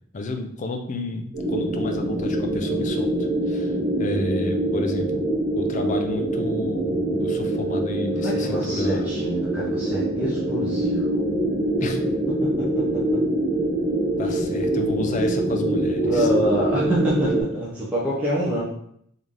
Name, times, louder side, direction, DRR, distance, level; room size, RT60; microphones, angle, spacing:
voice 1, 0.1-5.2 5.5-9.1 11.8-12.0 14.2-16.3, left 2 dB, 35° left, 4 dB, 0.4 m, -31 dB
sound 1, 1.3-17.4, right 1 dB, 65° right, 1.5 m, -24 dB
voice 2, 8.1-11.2 16.0-18.6, right 1 dB, 5° right, -8 dB, 0.7 m, -26 dB
3.2 x 2.7 x 3.6 m, 0.68 s
head